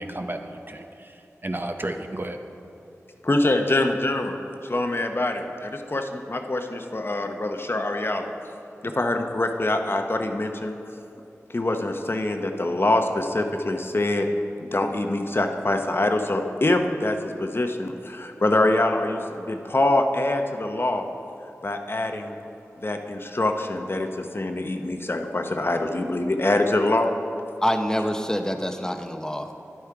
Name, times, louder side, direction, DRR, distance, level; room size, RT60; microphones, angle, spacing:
voice 1, 0.0-2.4 3.8-3.9, right 1 dB, 40° right, 5 dB, 0.7 m, -33 dB
voice 2, 3.2-4.4 4.6-8.3 8.8-10.8 11.5-14.3 14.6-21.1 21.6-22.3 22.8-27.1, left 2 dB, 45° left, 5 dB, 0.8 m, -24 dB
voice 3, 27.6-29.6, equal, 10° left, 6 dB, 0.8 m, -26 dB
10.5 x 8.4 x 4.7 m, 2.8 s
cardioid pair, 40°, 5 cm